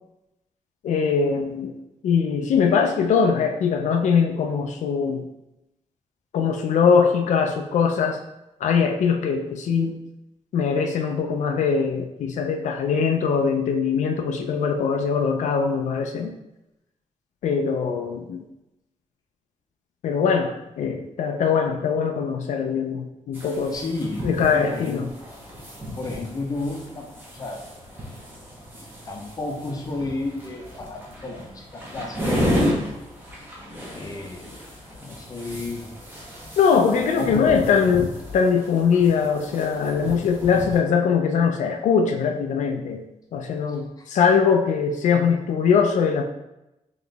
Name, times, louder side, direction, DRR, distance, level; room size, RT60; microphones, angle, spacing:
voice 1, 0.8-1.7 2.0-5.3 6.3-8.2 8.6-10.0 10.5-16.3 17.4-18.4 20.0-20.5 20.8-23.8 24.2-25.1 36.6-43.0 43.3-46.2, left 6 dB, 85° left, 4 dB, 0.4 m, -21 dB
sound 1, 23.3-40.8, equal, 15° right, 0.8 m, -33 dB
voice 2, 23.7-25.0 26.0-27.6 28.7-32.6 33.9-34.7 35.0-35.9 36.7-37.6 43.7-44.0, left 2 dB, 30° left, 1 dB, 0.6 m, -33 dB
3.9 x 3.0 x 3.4 m, 0.91 s
wide cardioid pair, 175°, 12 cm